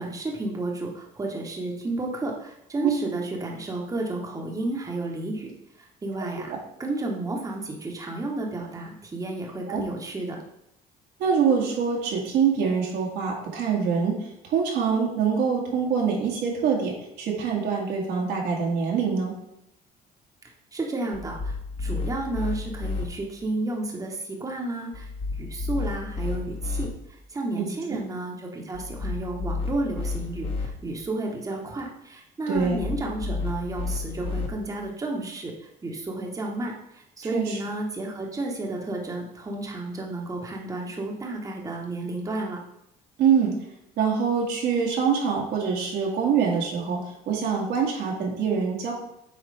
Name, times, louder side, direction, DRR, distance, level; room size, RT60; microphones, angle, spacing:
voice 1, 0.0-5.5 5.8-10.4 20.7-25.1 25.4-26.9 27.3-35.5 35.8-42.6, right 2 dB, 20° right, 0 dB, 1.1 m, -32 dB
voice 2, 11.2-14.1 14.5-19.3 27.6-28.0 32.5-32.8 37.3-37.6 43.2-43.5 44.0-48.9, right 6 dB, 80° right, -2 dB, 1.9 m, -24 dB
sound 1, 21.1-23.1 24.9-26.9 28.7-30.7 32.6-34.5, left 4 dB, 35° left, 1.3 m, -31 dB
7.6 x 4.4 x 3.4 m, 0.81 s
cardioid pair, 110°, 17 cm